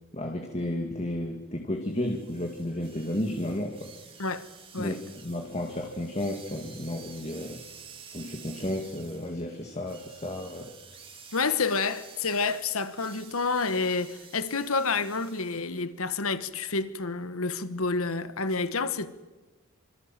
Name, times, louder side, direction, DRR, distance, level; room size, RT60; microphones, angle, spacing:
voice 1, 0.1-3.9 4.8-5.0 5.2-7.6 8.1-10.7, left 1 dB, 30° left, 2.1 m, -32 dB
sound 1, 1.9-15.8, right 6 dB, 25° right, 2.7 m, -50 dB
voice 2, 11.3-19.1, left 4 dB, 75° left, 1.4 m, -29 dB
26.5 x 26.5 x 7.5 m
head